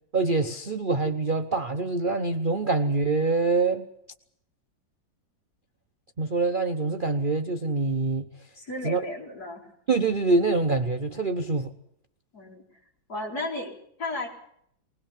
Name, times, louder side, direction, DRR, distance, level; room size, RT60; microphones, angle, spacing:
voice 1, 0.1-3.9 6.2-8.3 8.8-9.0 9.9-11.7, right 3 dB, 35° right, 5 dB, 0.8 m, -25 dB
voice 2, 8.6-9.7 12.3-12.6 13.1-13.7 14.0-14.3, left 2 dB, 55° left, -1 dB, 5.0 m, -34 dB
21.0 x 20.5 x 7.3 m, 0.71 s
omnidirectional pair, 2.1 m